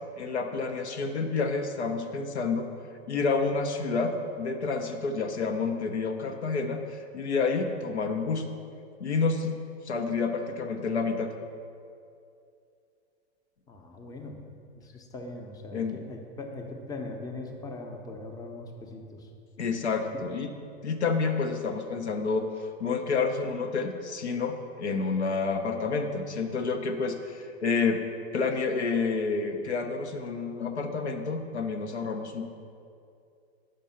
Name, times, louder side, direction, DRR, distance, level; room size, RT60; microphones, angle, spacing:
voice 1, 0.1-2.7 3.1-8.5 9.0-9.5 9.8-11.3 15.7-16.0 19.6-20.5 20.8-28.0 28.3-32.5, left 4 dB, 90° left, 5 dB, 0.7 m, -29 dB
voice 2, 13.7-14.4 14.7-19.3, left 2 dB, 10° left, 2 dB, 0.6 m, -40 dB
5.3 x 5.2 x 5.6 m, 2.5 s
hypercardioid pair, 100°, 33 cm